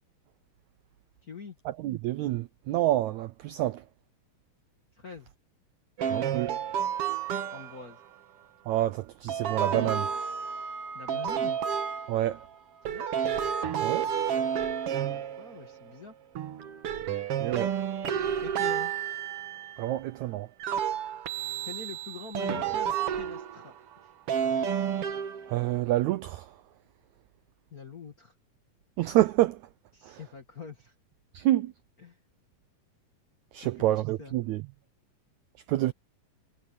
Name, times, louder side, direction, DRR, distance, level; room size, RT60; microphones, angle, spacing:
voice 1, 1.2-1.6 4.9-5.3 7.5-8.0 10.9-11.6 12.9-13.2 15.1-16.1 18.4-18.9 21.7-23.7 24.0-24.1 27.7-28.3 29.9-30.9 32.0-32.2 33.6-33.9 34.2-34.4, left 5 dB, 35° left, 1.5 m, -44 dB
voice 2, 1.8-3.8 6.1-6.6 8.7-10.1 12.1-12.4 13.8-14.1 17.4-17.7 19.8-20.5 25.5-26.5 29.0-29.6 30.0-30.2 31.3-31.7 33.5-34.6 35.7-35.9, right 15 dB, 80° right, 1.7 m, -27 dB
sound 1, 6.0-7.9 9.3-12.5 12.9-15.9 16.4-19.9 20.6-23.7 24.3-25.7, right 8 dB, 55° right, 1.8 m, -31 dB
omnidirectional pair, 3.9 m